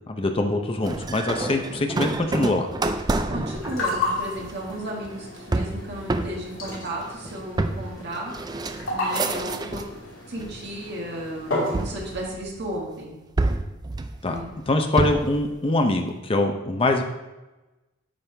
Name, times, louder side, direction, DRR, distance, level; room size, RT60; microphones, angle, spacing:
voice 1, 0.1-2.7 14.2-14.4 14.7-17.1, left 2 dB, 30° left, 4 dB, 0.6 m, -23 dB
sound 1, 0.8-10.0 10.4-11.0 11.7-12.8 13.4-15.4, right 2 dB, 20° right, 0.4 m, -29 dB
voice 2, 3.3-8.3 8.9-9.8 10.3-13.2 14.3-14.5, right 1 dB, 60° right, -2 dB, 1.9 m, -34 dB
sound 2, 3.4-12.3, left 2 dB, 70° left, 2.6 m, -33 dB
8.9 x 5.5 x 3.3 m, 1.1 s
head